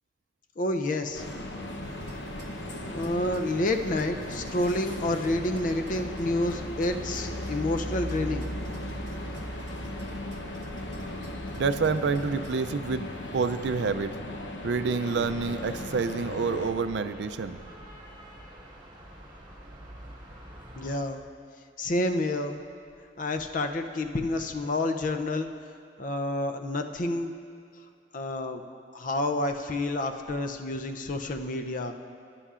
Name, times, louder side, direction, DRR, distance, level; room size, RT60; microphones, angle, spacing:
voice 1, 0.6-1.2 2.9-8.5 20.8-21.2 21.8-22.6 23.2-25.5 26.0-27.3 28.1-28.6 28.9-31.9, left 1 dB, 45° left, 6 dB, 0.5 m, -29 dB
sound 1, 1.1-16.7, left 1 dB, 80° left, 0.8 m, -38 dB
sound 2, 1.8-13.9, right 1 dB, 40° right, 1.0 m, -41 dB
voice 2, 11.6-14.1 14.6-17.6, right 4 dB, 65° right, 11 dB, 0.4 m, -28 dB
sound 3, 15.4-21.0, right 1 dB, 25° right, 1.5 m, -47 dB
16.5 x 9.9 x 2.5 m, 2.3 s
head